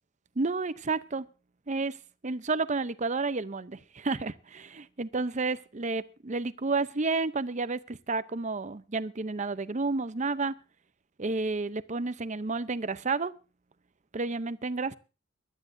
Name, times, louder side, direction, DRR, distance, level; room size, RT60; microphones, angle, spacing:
voice 1, 0.4-1.3 1.7-2.0 2.2-10.5 11.2-13.3 14.1-14.9, right 3 dB, 40° right, 0.7 m, -31 dB
24.0 x 12.0 x 2.7 m
head